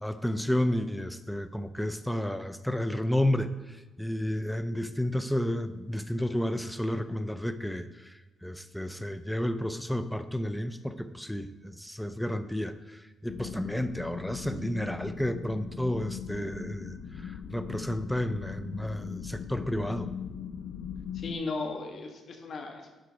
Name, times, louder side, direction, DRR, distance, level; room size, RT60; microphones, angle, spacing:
voice 1, 0.0-3.5 4.0-8.1 8.4-17.0 17.2-20.1, left 1 dB, 5° left, 11 dB, 0.5 m, -31 dB
sound 1, 13.3-21.3, left 7 dB, 75° left, 0.5 m, -40 dB
voice 2, 21.1-22.9, left 3 dB, 55° left, 3 dB, 1.6 m, -36 dB
11.0 x 3.9 x 5.2 m, 1.1 s
cardioid pair, 90°, 0 cm